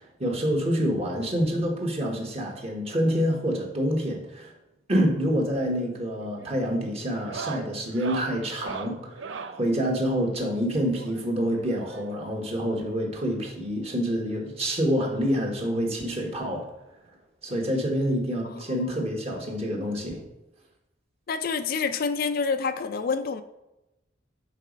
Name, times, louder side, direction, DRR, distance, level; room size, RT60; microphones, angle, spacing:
voice 1, 0.0-4.5 4.9-16.6 17.4-20.2, equal, 35° right, 0 dB, 1.4 m, -27 dB
sound 1, 5.6-5.9 6.2-6.6 7.1-9.6 10.9-12.3 13.4-13.5 13.7-13.8 14.3-14.4 15.6-15.7 17.1-17.2, right 5 dB, 80° right, 0.5 m, -40 dB
voice 2, 18.4-19.0 21.3-23.4, left 5 dB, 50° left, 10 dB, 0.4 m, -28 dB
6.5 x 4.1 x 5.2 m, 0.96 s
head